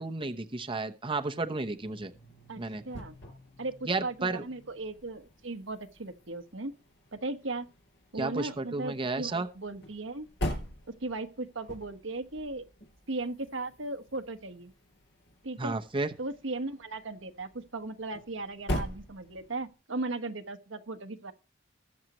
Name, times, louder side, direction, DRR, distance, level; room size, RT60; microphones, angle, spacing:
voice 1, 0.0-2.1 2.6-2.8 3.9-4.4 8.1-9.5 15.6-16.1, right 3 dB, 25° right, 0.9 m, -32 dB
sound 1, 1.6-19.7, equal, 65° left, 5.1 m, -43 dB
voice 2, 2.5-3.2 3.6-6.7 7.1-7.7 8.1-10.3 11.0-12.6 13.1-14.7 15.4-15.8 16.2-21.3, right 2 dB, 90° right, 1.4 m, -37 dB
21.5 x 7.4 x 3.1 m
head